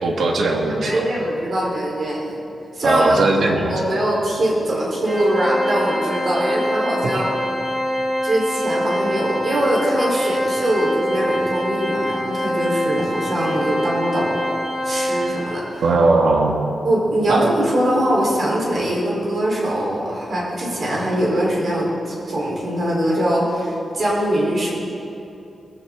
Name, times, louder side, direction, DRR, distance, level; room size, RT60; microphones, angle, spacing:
voice 1, 0.0-1.1 2.8-3.9 7.0-7.2 15.8-16.6 17.3-17.5, right 2 dB, 70° right, 1 dB, 1.9 m, -19 dB
voice 2, 0.7-2.3 2.7-3.2 3.5-7.4 8.2-14.4 14.8-15.8 16.8-24.7, right 1 dB, 45° right, -4 dB, 4.0 m, -22 dB
Organ, 5.1-15.8, equal, 5° right, 2.5 m, -24 dB
19.0 x 14.5 x 3.8 m, 2.8 s
wide cardioid pair, 150°, 0 cm